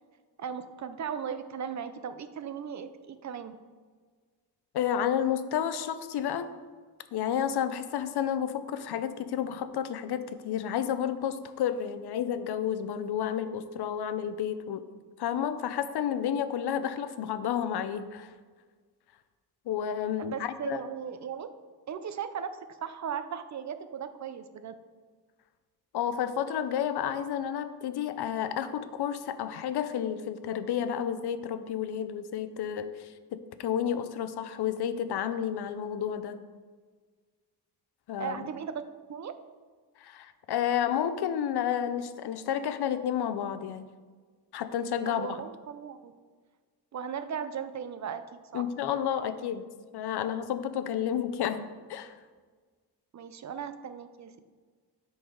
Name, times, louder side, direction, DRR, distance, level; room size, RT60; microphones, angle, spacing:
voice 1, 0.4-3.6 20.2-21.5 21.9-24.7 38.2-38.8 39.1-39.3 45.0-46.1 46.9-48.2 48.5-48.6 53.1-54.3, right 7 dB, 45° right, 11 dB, 0.4 m, -37 dB
voice 2, 4.7-6.5 7.1-14.8 15.2-18.3 19.7-20.8 25.9-36.4 38.1-38.5 40.0-43.9 44.5-45.4 48.5-49.6 49.9-52.2, left 9 dB, 75° left, 11 dB, 0.6 m, -31 dB
7.6 x 4.0 x 5.2 m, 1.5 s
wide cardioid pair, 140°, 40 cm